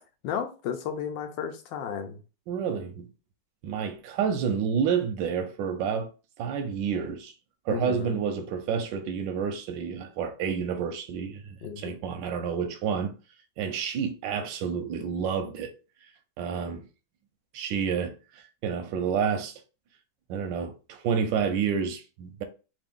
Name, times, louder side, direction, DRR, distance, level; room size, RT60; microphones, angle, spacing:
voice 1, 0.2-2.2 7.7-8.2 11.6-11.9, left 7 dB, 85° left, 1.4 m, -33 dB
voice 2, 2.5-3.1 3.6-6.1 6.4-7.3 7.7-13.1 13.6-15.7 16.4-16.9 17.5-19.5 20.3-22.4, right 7 dB, 90° right, 1.3 m, -29 dB
3.5 x 2.5 x 3.5 m
omnidirectional pair, 1.9 m